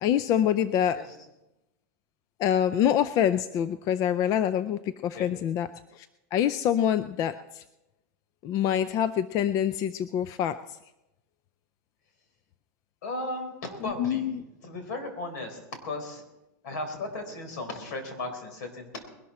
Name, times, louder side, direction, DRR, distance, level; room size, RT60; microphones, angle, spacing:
voice 1, 0.0-1.0 2.4-5.7 5.9-7.6 8.4-10.6 13.8-14.4, left 10 dB, 35° left, 13 dB, 0.5 m, -26 dB
voice 2, 13.0-16.2 16.6-19.0, left 2 dB, 75° left, 6 dB, 4.1 m, -36 dB
21.0 x 12.5 x 4.3 m, 0.95 s
supercardioid pair, 140°, 9 cm